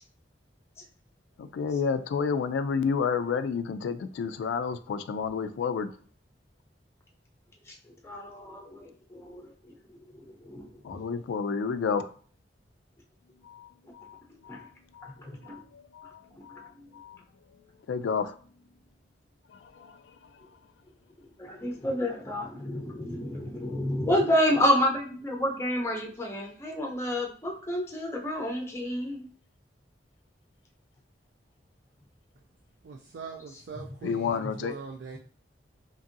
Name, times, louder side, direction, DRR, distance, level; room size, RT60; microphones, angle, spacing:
voice 1, 1.4-5.9 10.8-12.1 13.4-17.2 17.9-18.4 19.5-20.5 34.0-34.7, left 6 dB, 90° left, 10 dB, 0.3 m, -31 dB
voice 2, 8.0-9.5 9.9-11.0 14.5-14.6 15.2-15.6 21.4-29.3, equal, 15° left, 0 dB, 0.5 m, -29 dB
voice 3, 32.8-35.2, right 4 dB, 70° right, 2 dB, 0.3 m, -42 dB
2.8 x 2.6 x 2.5 m, 0.44 s
head